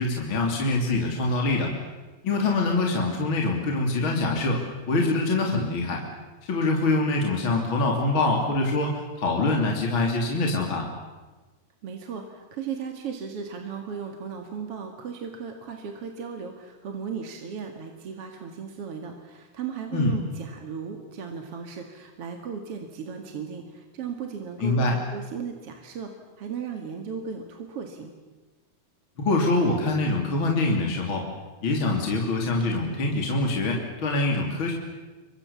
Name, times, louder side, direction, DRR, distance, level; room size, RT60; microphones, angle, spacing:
voice 1, 0.0-1.7 2.2-6.0 6.5-10.9 19.9-20.2 24.6-25.0 29.2-31.3 31.6-34.7, left 2 dB, 35° left, 1 dB, 3.5 m, -24 dB
voice 2, 11.8-26.1 26.4-28.1, right 6 dB, 45° right, 4 dB, 2.6 m, -36 dB
29.0 x 24.5 x 7.2 m, 1.2 s
omnidirectional pair, 4.2 m